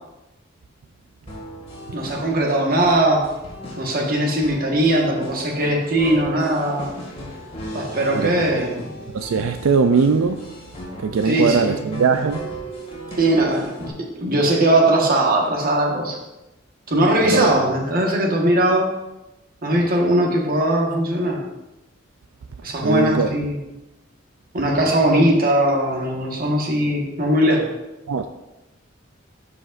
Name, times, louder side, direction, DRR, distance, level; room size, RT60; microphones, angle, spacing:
sound 1, 1.3-13.9, equal, 30° left, 2.0 m, -36 dB
voice 1, 1.9-3.2 3.8-6.9 7.7-8.9 11.2-11.7 13.2-16.2 16.9-18.9 19.6-21.4 22.6-23.6 24.5-27.7, right 1 dB, 45° right, 1.4 m, -20 dB
voice 2, 8.1-8.5 9.1-10.5 11.0-12.5 17.3-17.5 22.8-23.3 28.1-28.3, right 5 dB, 90° right, 0.4 m, -20 dB
12.0 x 5.1 x 2.5 m
head